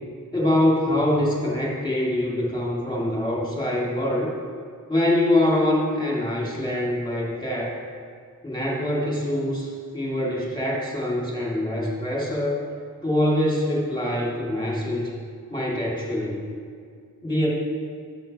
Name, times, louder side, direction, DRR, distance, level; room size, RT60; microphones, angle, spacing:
voice 1, 0.3-4.3 4.9-7.8 8.4-12.6 13.0-15.1 15.5-16.5 17.2-17.5, left 1 dB, 10° left, -4 dB, 2.8 m, -24 dB
11.0 x 7.8 x 4.4 m, 2.1 s
wide cardioid pair, 45°, 38 cm